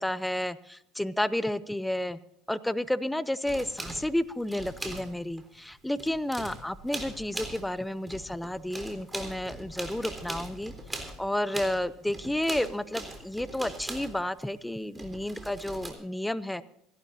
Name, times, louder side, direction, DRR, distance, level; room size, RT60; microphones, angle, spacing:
voice 1, 0.0-2.2 2.5-16.6, left 1 dB, 5° left, 17 dB, 0.6 m, -31 dB
sound 1, 3.5-5.4 5.7-7.8 8.1-14.4 14.9-15.9, right 2 dB, 15° right, 3.6 m, -40 dB
27.0 x 12.0 x 2.7 m, 0.77 s
hypercardioid pair, 75°, 0 cm